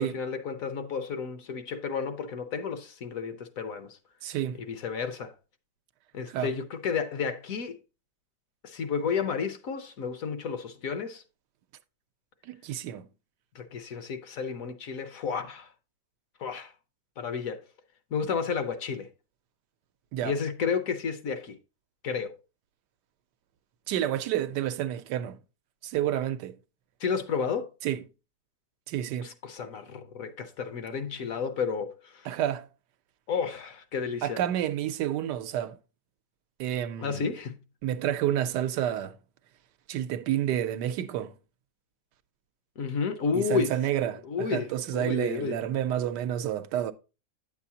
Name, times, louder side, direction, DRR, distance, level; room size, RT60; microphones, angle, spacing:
voice 1, 0.0-4.0 4.5-5.3 6.1-7.8 8.6-11.2 13.5-15.7 16.4-16.7 17.2-17.6 18.1-19.1 20.2-21.6 22.0-22.4 27.0-27.7 29.2-32.3 33.3-34.4 37.0-37.6 42.8-43.8 44.2-45.6, left 6 dB, 60° left, 1.0 m, -32 dB
voice 2, 4.2-4.6 6.3-6.5 12.4-13.1 20.1-20.3 23.9-25.4 25.8-26.6 27.8-28.0 28.9-29.3 32.2-32.7 34.2-35.8 36.6-37.3 37.8-39.1 39.9-41.3 43.3-46.9, right 11 dB, 85° right, 1.2 m, -29 dB
8.9 x 7.2 x 2.7 m
omnidirectional pair, 1.8 m